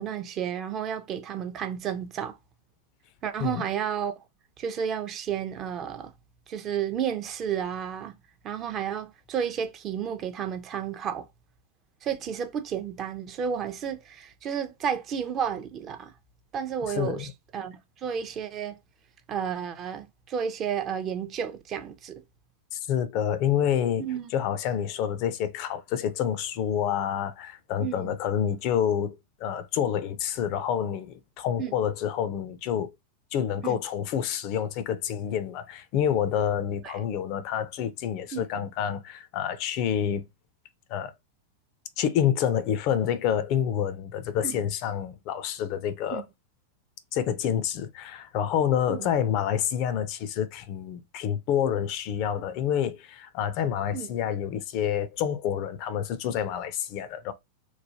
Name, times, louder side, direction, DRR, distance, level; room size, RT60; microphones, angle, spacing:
voice 1, 0.0-2.4 3.2-4.2 4.6-6.1 6.5-8.1 8.4-11.3 12.0-16.1 16.5-18.8 19.3-22.2 24.0-24.3 27.8-28.1 31.6-31.7 33.6-33.8 36.8-36.9 38.3-38.5 44.4-44.6 46.1-46.2 48.9-49.1 53.9-54.1, right 8 dB, 30° right, 0.4 m, -32 dB
voice 2, 16.9-17.3 22.7-24.0 24.3-32.9 33.3-40.3 40.9-41.1 42.0-46.2 47.1-57.3, left 9 dB, 45° left, 0.4 m, -28 dB
3.1 x 2.1 x 2.7 m
figure-of-eight pair, 90°, 0 cm